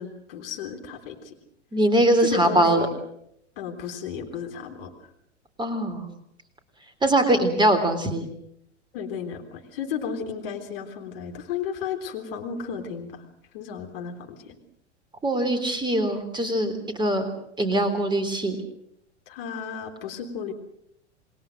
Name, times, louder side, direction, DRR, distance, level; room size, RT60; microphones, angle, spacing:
voice 1, 0.0-1.4 2.3-3.0 3.6-4.9 8.9-13.2 13.5-14.6 19.3-20.5, left 7 dB, 50° left, 4 dB, 3.6 m, -34 dB
voice 2, 1.7-2.9 5.6-6.1 7.0-8.3 15.2-16.7 17.0-17.2 17.6-18.6, right 1 dB, 10° right, 8 dB, 3.7 m, -22 dB
28.5 x 21.5 x 6.5 m, 0.73 s
figure-of-eight pair, 95°, 36 cm